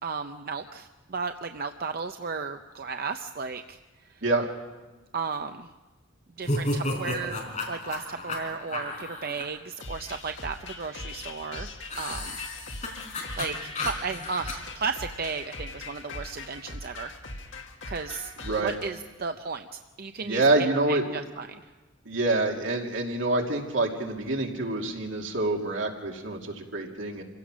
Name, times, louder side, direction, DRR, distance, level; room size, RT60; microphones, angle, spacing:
voice 1, 0.0-3.8 4.0-4.2 5.1-5.7 6.4-7.4 7.7-11.7 12.0-12.4 13.4-17.1 17.9-18.3 18.6-19.7 20.0-20.5 20.9-21.6, right 5 dB, 50° right, 6 dB, 0.6 m, -34 dB
sound 1, 6.4-9.4 11.9-14.5, left 2 dB, 40° left, 4.2 m, -32 dB
sound 2, 9.8-18.9, left 2 dB, 75° left, 2.1 m, -41 dB
voice 2, 18.4-18.8 20.2-21.0 22.0-27.2, right 2 dB, 80° right, 1 dB, 2.7 m, -26 dB
27.0 x 16.5 x 6.2 m, 1.2 s
head